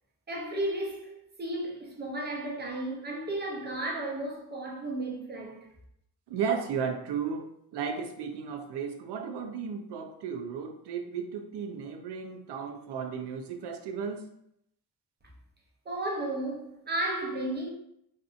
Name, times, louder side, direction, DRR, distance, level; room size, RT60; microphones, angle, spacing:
voice 1, 0.3-5.6 15.9-17.7, right 1 dB, 25° right, 0.6 m, -33 dB
voice 2, 6.3-14.3, right 6 dB, 75° right, 0.5 m, -34 dB
2.6 x 2.5 x 2.4 m
wide cardioid pair, 125°, 41 cm